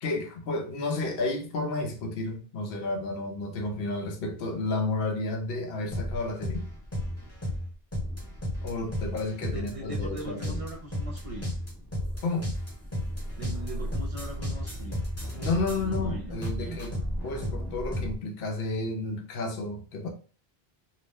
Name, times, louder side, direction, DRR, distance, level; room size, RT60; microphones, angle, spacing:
voice 1, 0.0-6.7 8.6-10.6 12.2-12.5 15.3-20.1, left 2 dB, 70° left, 0.7 m, -31 dB
sound 1, 5.9-18.2, equal, 15° left, 0.8 m, -33 dB
voice 2, 9.5-11.5 13.4-15.0 15.7-16.8, right 1 dB, 50° right, 0.4 m, -40 dB
2.3 x 2.0 x 3.3 m
omnidirectional pair, 1.0 m